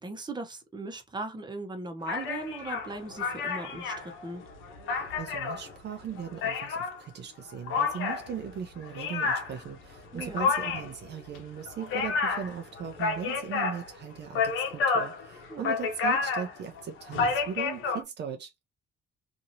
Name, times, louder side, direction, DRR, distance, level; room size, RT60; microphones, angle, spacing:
voice 1, 0.0-4.4 10.1-10.5 15.5-15.7, right 2 dB, 20° right, 1.0 m, -38 dB
sound 1, 2.1-7.0 7.7-18.0, left 5 dB, 90° left, 0.8 m, -30 dB
voice 2, 4.9-18.5, right 8 dB, 60° right, 0.6 m, -38 dB
2.9 x 2.6 x 2.6 m
cardioid pair, 90°, 20 cm